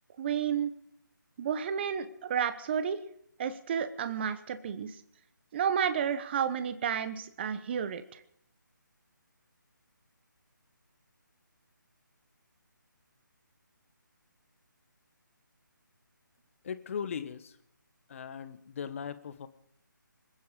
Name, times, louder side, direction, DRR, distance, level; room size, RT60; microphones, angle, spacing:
voice 1, 0.2-0.7 1.4-3.0 3.4-5.0 5.5-8.2, right 8 dB, 30° right, 11 dB, 1.1 m, -31 dB
voice 2, 16.6-17.6 18.1-19.5, left 7 dB, 40° left, 12 dB, 1.2 m, -38 dB
26.0 x 9.5 x 5.4 m, 0.70 s
figure-of-eight pair, 155°, 11 cm